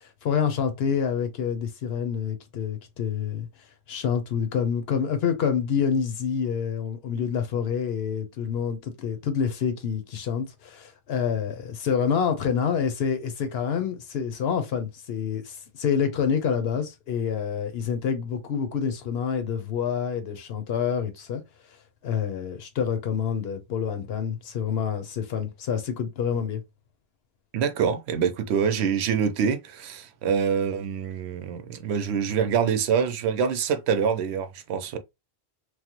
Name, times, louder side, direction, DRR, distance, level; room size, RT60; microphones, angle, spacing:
voice 1, 0.0-3.5 3.9-21.4 22.0-26.6, left 7 dB, 75° left, 0.9 m, -27 dB
voice 2, 27.5-35.0, right 7 dB, 80° right, 0.8 m, -25 dB
3.1 x 2.0 x 2.9 m
omnidirectional pair, 1.1 m